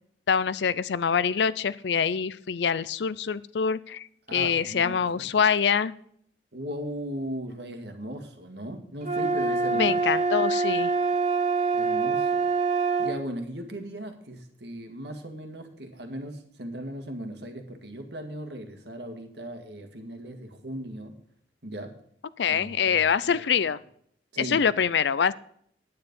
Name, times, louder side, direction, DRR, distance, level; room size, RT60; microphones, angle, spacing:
voice 1, 0.3-5.9 9.7-10.9 22.4-23.8 24.4-25.3, left 6 dB, 70° left, 18 dB, 0.5 m, -25 dB
voice 2, 4.3-5.3 6.5-9.9 11.7-12.5 13.0-21.1 21.6-21.9 22.5-23.5 24.3-24.6, right 1 dB, 65° right, 6 dB, 1.8 m, -37 dB
sound 1, 9.0-13.2, right 4 dB, 40° right, 2.1 m, -25 dB
9.6 x 9.6 x 5.3 m, 0.65 s
head